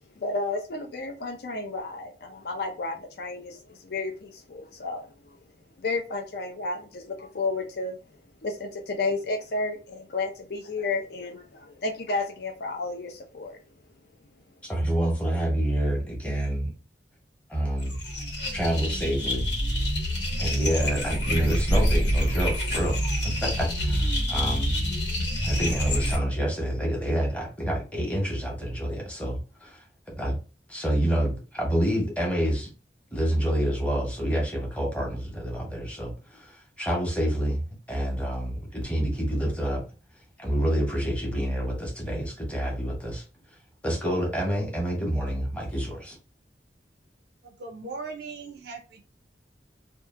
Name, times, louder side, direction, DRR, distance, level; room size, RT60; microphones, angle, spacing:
voice 1, 0.2-5.1 5.8-8.0 8.4-13.6, left 3 dB, 60° left, 3 dB, 0.5 m, -32 dB
voice 2, 14.6-16.7 17.5-18.0 18.5-19.5 20.4-24.8 25.4-29.8 30.2-30.4 30.7-32.7 33.1-37.6 37.9-39.8 40.4-43.2 43.8-46.2, right 1 dB, 5° left, -2 dB, 0.9 m, -27 dB
sound 1, 17.8-26.2, equal, 85° left, 1.2 m, -27 dB
voice 3, 47.4-49.0, right 4 dB, 60° right, 3 dB, 0.4 m, -39 dB
2.7 x 2.3 x 2.4 m, 0.33 s
head